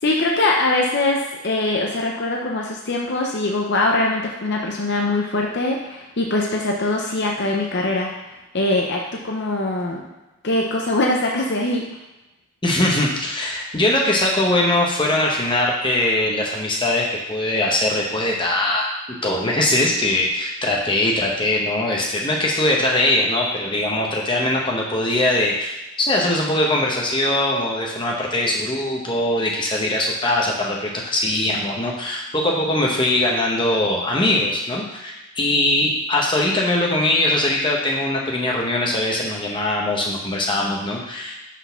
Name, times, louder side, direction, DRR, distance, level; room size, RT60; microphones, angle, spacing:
voice 1, 0.0-8.1 8.5-10.0 10.4-11.8, left 2 dB, 50° left, -1 dB, 0.7 m, -22 dB
voice 2, 12.6-19.0 19.2-41.3, left 1 dB, 20° left, -1 dB, 1.0 m, -21 dB
5.9 x 4.0 x 5.7 m, 1.0 s
head